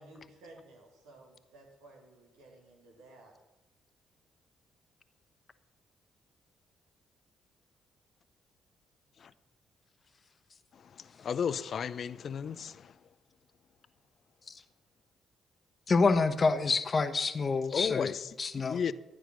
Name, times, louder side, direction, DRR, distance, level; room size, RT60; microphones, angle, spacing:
voice 1, 0.0-3.3, right 2 dB, 80° right, 3.1 m, -55 dB
voice 2, 10.7-13.0 17.7-18.3 18.6-18.9, left 7 dB, 55° left, 0.6 m, -34 dB
voice 3, 15.9-18.1 18.4-18.8, left 4 dB, 40° left, 1.2 m, -27 dB
13.0 x 9.0 x 6.3 m
hypercardioid pair, 50°, 0 cm